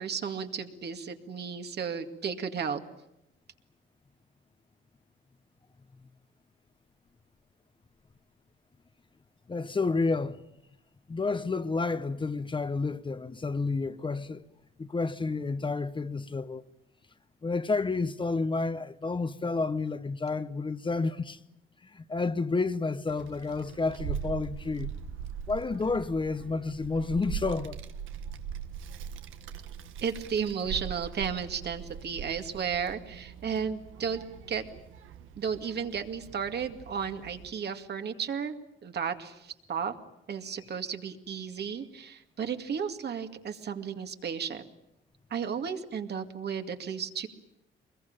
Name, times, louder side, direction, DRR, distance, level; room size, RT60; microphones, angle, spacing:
voice 1, 0.0-2.8 30.0-34.6 35.4-38.6 38.8-39.9 40.3-44.6 45.3-47.3, right 7 dB, 55° right, 2.3 m, -34 dB
voice 2, 9.5-10.4 11.1-14.4 14.8-16.6 17.4-21.4 21.8-24.9 25.5-27.8, left 3 dB, 25° left, 1.0 m, -30 dB
Child speech kid speaking, 23.1-37.5, right 8 dB, 85° right, 1.5 m, -41 dB
23.5 x 21.5 x 8.9 m
cardioid pair, 90°, 20 cm